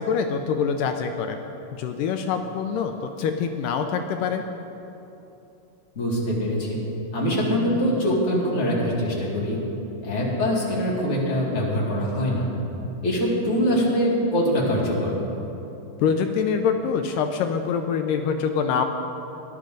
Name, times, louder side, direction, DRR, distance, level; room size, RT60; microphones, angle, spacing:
voice 1, 0.0-1.4 1.7-2.9 3.2-4.4 16.0-18.9, left 6 dB, 85° left, 6 dB, 2.2 m, -25 dB
voice 2, 5.9-6.8 7.1-9.6 10.0-12.5 13.0-15.2, equal, 20° left, -5 dB, 2.3 m, -23 dB
19.0 x 11.5 x 3.9 m, 2.9 s
omnidirectional pair, 4.0 m